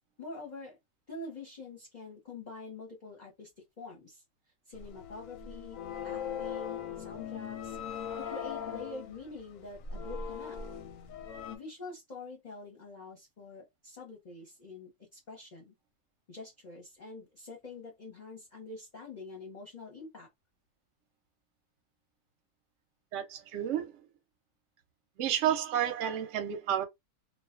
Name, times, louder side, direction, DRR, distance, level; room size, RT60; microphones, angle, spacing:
voice 1, 0.2-0.8 1.1-3.5 3.8-4.2 4.7-7.8 8.2-10.6 11.5-15.7 16.3-20.3, left 3 dB, 40° left, 0.7 m, -46 dB
sound 1, 4.7-11.6, left 7 dB, 70° left, 0.9 m, -39 dB
voice 2, 23.1-23.9 25.2-26.8, right 10 dB, 65° right, 0.8 m, -30 dB
2.4 x 2.3 x 2.4 m
omnidirectional pair, 1.6 m